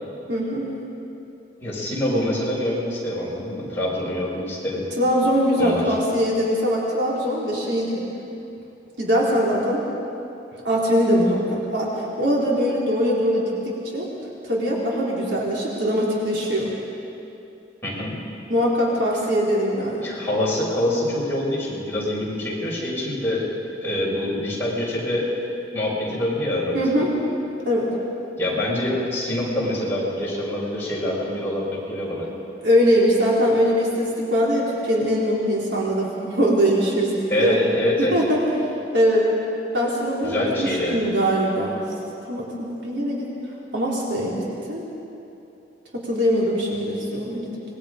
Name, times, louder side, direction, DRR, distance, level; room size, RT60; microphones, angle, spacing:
voice 1, 0.3-0.7 5.0-8.0 9.0-9.8 10.6-14.1 14.4-16.7 18.5-20.1 26.7-27.1 27.7-27.9 32.6-37.6 38.0-38.4 38.9-39.2 39.7-41.8 42.3-43.3 43.7-44.8 45.9-47.6, equal, 75° right, -5 dB, 4.0 m, -22 dB
voice 2, 1.6-4.8 5.6-5.9 17.8-18.1 20.0-23.4 23.8-25.3 25.7-27.0 28.4-32.3 37.3-38.1 40.2-40.9, left 1 dB, 15° left, -7 dB, 6.5 m, -25 dB
26.5 x 20.5 x 5.2 m, 2.8 s
head